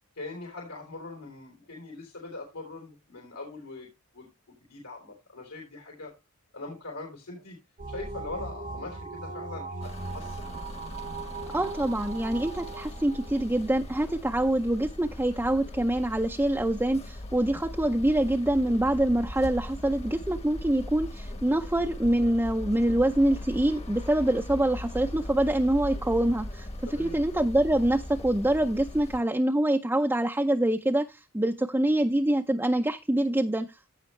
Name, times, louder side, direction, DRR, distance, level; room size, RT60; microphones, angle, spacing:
voice 1, 0.2-3.9 4.1-6.1 6.5-7.6 7.9-10.5 26.9-27.2, left 3 dB, 80° left, 0 dB, 3.6 m, -42 dB
sound 1, 7.8-14.2, right 3 dB, 40° right, 0.9 m, -39 dB
sound 2, 9.8-29.2, left 1 dB, 30° left, 1.1 m, -39 dB
voice 2, 11.5-34.0, right 1 dB, 10° right, 3 dB, 0.5 m, -25 dB
15.5 x 5.5 x 3.2 m, 0.25 s
head